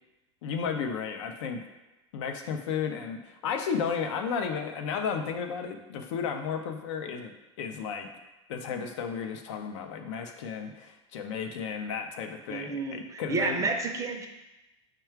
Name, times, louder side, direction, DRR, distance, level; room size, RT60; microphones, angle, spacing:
voice 1, 0.4-1.6 2.1-7.3 7.6-8.1 8.5-13.7, left 6 dB, 70° left, 5 dB, 0.5 m, -33 dB
voice 2, 12.5-14.3, right 3 dB, 20° right, 4 dB, 0.5 m, -30 dB
4.7 x 2.3 x 4.5 m, 1.0 s
supercardioid pair, 125°, 16 cm